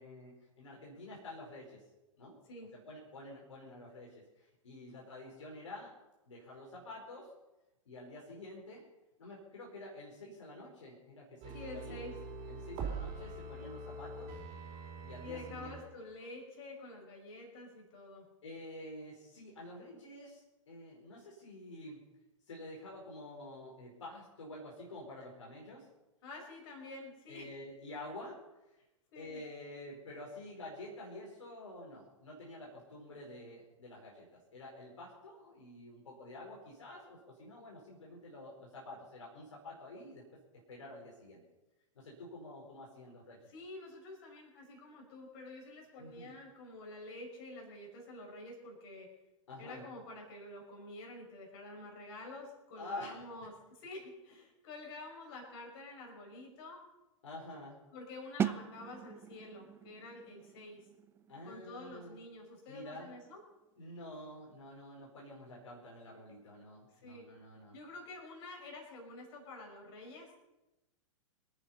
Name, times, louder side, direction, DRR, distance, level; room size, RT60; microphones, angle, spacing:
voice 1, 0.0-1.8 2.2-2.3 2.7-5.9 6.3-7.3 7.8-8.8 9.2-12.0 12.5-14.4 15.0-15.7 18.4-22.0 22.5-25.9 27.3-28.4 29.1-34.3 34.5-40.2 40.7-41.4 41.9-43.4 46.0-46.4 49.5-49.8 52.8-53.2 57.2-57.8 61.3-62.2 62.7-63.1 63.8-67.8, left 1 dB, 65° left, -3 dB, 4.8 m, -49 dB
sound 1, 11.4-15.8 16.2-16.3, right 4 dB, 35° right, 4.5 m, -43 dB
voice 2, 11.5-12.2 15.2-18.3 26.2-27.5 29.1-29.4 43.5-49.1 49.6-56.8 57.9-60.8 61.5-63.5 67.0-67.3 67.7-70.4, left 2 dB, 50° left, 0 dB, 5.7 m, -48 dB
sound 2, 58.4-64.1, right 8 dB, 15° right, 0.5 m, -41 dB
26.0 x 9.3 x 5.5 m, 1.0 s
figure-of-eight pair, 100°, 17 cm